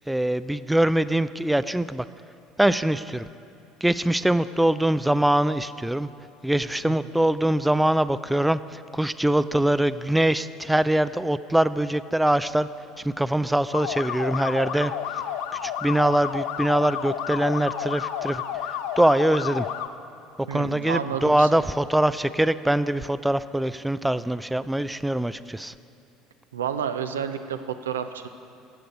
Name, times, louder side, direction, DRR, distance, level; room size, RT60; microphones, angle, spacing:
voice 1, 0.1-2.1 2.6-3.3 3.8-6.1 6.4-12.7 13.0-15.2 15.5-19.7 20.4-25.7, right 1 dB, 5° right, 14 dB, 0.3 m, -23 dB
sound 1, 13.7-19.9, left 9 dB, 65° left, 0.5 m, -31 dB
voice 2, 20.5-21.6 26.5-28.3, right 8 dB, 80° right, 8 dB, 0.5 m, -30 dB
13.5 x 7.9 x 5.2 m, 2.6 s
figure-of-eight pair, 65°, 0 cm